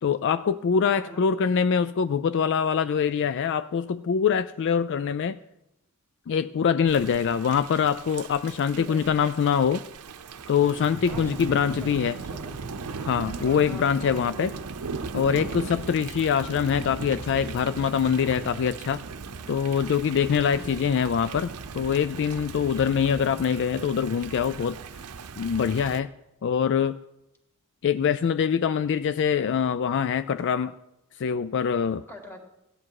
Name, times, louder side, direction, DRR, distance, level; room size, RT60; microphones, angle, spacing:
voice 1, 0.0-5.4 6.3-9.8 10.5-12.2 13.1-14.6 15.1-19.0 19.5-24.8 25.4-26.1 26.4-27.0 27.8-30.8 31.2-32.1, left 7 dB, 55° left, 14 dB, 0.3 m, -24 dB
voice 2, 0.9-1.2 8.7-9.2 11.1-12.7 13.4-14.2 20.5-20.7 22.7-22.8 32.1-32.4, equal, 10° left, 3 dB, 1.9 m, -43 dB
Thunder / Rain, 6.9-26.0, right 4 dB, 90° right, 0.7 m, -38 dB
16.0 x 9.8 x 4.7 m, 0.91 s
head